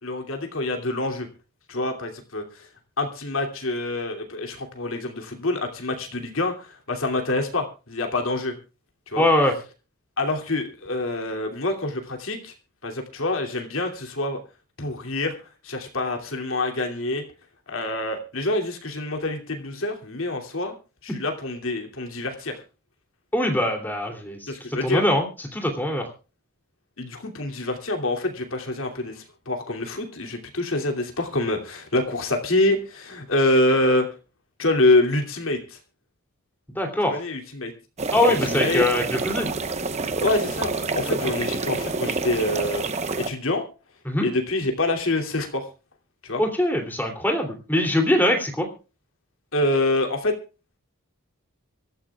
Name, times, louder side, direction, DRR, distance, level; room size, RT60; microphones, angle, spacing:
voice 1, 0.0-1.3 1.7-2.7 3.0-8.5 9.1-9.2 10.2-12.5 12.8-14.4 14.8-15.3 15.6-17.2 17.7-20.8 21.0-22.6 24.5-25.0 27.0-34.1 34.6-35.8 37.1-37.7 38.4-38.8 40.2-42.8 43.1-43.6 44.2-45.7 46.2-46.4 49.5-50.3, left 2 dB, 65° left, 3 dB, 2.8 m, -26 dB
voice 2, 9.2-9.5 23.3-24.5 24.8-26.1 36.7-37.2 38.1-39.5 44.0-44.3 46.4-48.7, left 1 dB, 10° left, 2 dB, 2.9 m, -22 dB
sound 1, 38.0-43.3, right 3 dB, 30° right, 0.9 m, -28 dB
25.0 x 13.5 x 2.4 m, 0.33 s
head